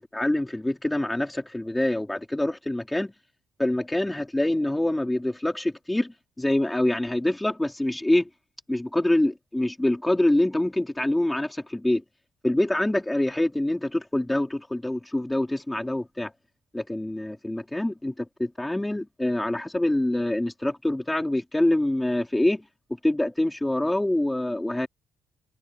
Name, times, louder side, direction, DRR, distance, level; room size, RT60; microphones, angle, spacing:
voice 1, 0.0-3.1 3.6-8.3 8.7-12.0 12.4-16.3 16.7-22.6 23.0-24.9, left 1 dB, 10° left, 3.3 m, -25 dB
cardioid pair, 135°, 0 cm